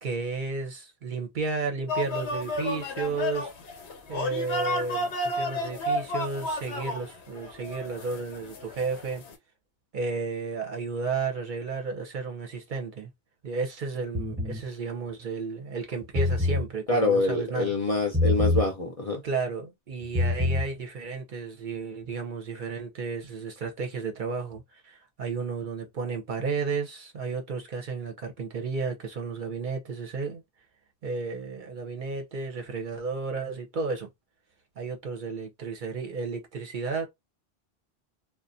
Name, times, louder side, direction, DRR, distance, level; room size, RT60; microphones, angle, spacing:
voice 1, 0.0-3.8 4.1-9.2 9.9-13.1 13.4-17.7 19.2-30.4 31.0-34.1 34.8-37.1, right 4 dB, 55° right, 0.7 m, -33 dB
sound 1, 1.9-9.4, left 1 dB, 90° left, 1.0 m, -32 dB
sound 2, 14.1-14.6 16.0-16.7 18.1-18.7 20.0-20.7, left 2 dB, 10° right, 0.9 m, -25 dB
voice 2, 16.9-19.2, left 2 dB, 40° left, 0.6 m, -25 dB
2.4 x 2.2 x 2.5 m
omnidirectional pair, 1.1 m